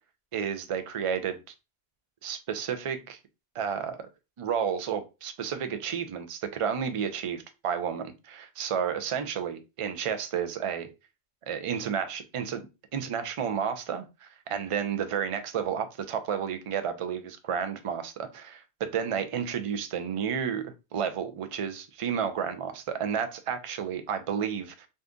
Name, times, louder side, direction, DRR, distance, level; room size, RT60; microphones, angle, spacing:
voice 1, 0.3-1.4 2.2-3.2 3.5-4.1 4.4-10.9 11.5-12.7 12.9-24.9, right 7 dB, 60° right, 0.3 m, -31 dB
2.7 x 2.5 x 3.4 m
omnidirectional pair, 1.1 m